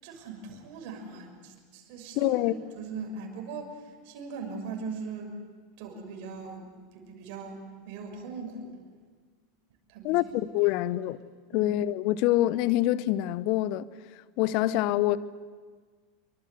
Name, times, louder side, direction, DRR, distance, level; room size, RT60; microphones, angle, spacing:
voice 1, 0.0-2.3 2.8-5.3 5.8-8.8 9.9-10.2 11.5-11.7, right 4 dB, 55° right, 6.2 m, -40 dB
voice 2, 2.1-2.5 10.0-11.2 11.5-13.9 14.4-15.2, left 15 dB, 50° left, 0.9 m, -25 dB
26.0 x 24.0 x 8.1 m
figure-of-eight pair, 85°, 0 cm